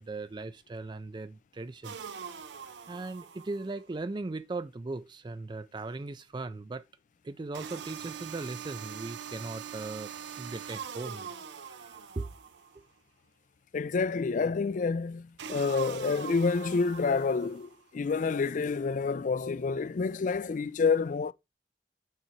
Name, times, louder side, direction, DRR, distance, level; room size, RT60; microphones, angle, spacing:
voice 1, 0.0-2.1 2.9-6.8 7.2-12.3, right 3 dB, 25° right, 0.4 m, -39 dB
sound 1, 1.8-3.8 7.5-12.8 15.4-17.8, right 7 dB, 80° right, 0.6 m, -43 dB
voice 2, 13.7-21.3, left 4 dB, 45° left, 0.4 m, -28 dB
6.6 x 4.9 x 4.3 m
head